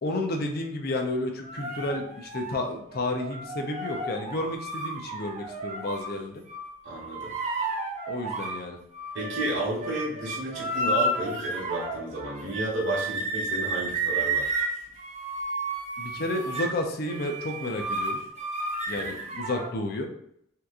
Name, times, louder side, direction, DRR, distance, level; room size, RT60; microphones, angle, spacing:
voice 1, 0.0-6.4 8.1-8.8 16.0-18.2 18.9-20.1, left 2 dB, 50° left, 3 dB, 0.5 m, -31 dB
sound 1, 1.4-6.1 6.5-8.6 8.9-19.7, right 2 dB, 35° right, 0.6 m, -32 dB
voice 2, 6.8-7.3 9.1-14.5 18.9-19.1, right 1 dB, 65° right, -6 dB, 1.0 m, -32 dB
2.8 x 2.4 x 3.6 m, 0.69 s
head